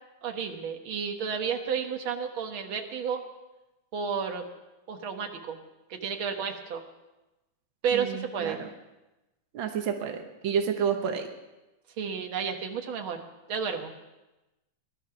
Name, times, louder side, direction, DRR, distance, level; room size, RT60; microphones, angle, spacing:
voice 1, 0.2-3.2 3.9-4.5 4.9-5.6 5.9-6.8 7.8-8.6 12.0-13.2 13.5-13.9, right 6 dB, 60° right, 4 dB, 1.3 m, -31 dB
voice 2, 7.9-8.7 9.5-11.3, right 7 dB, 80° right, 4 dB, 1.1 m, -30 dB
19.0 x 12.5 x 5.9 m, 1.0 s
omnidirectional pair, 3.9 m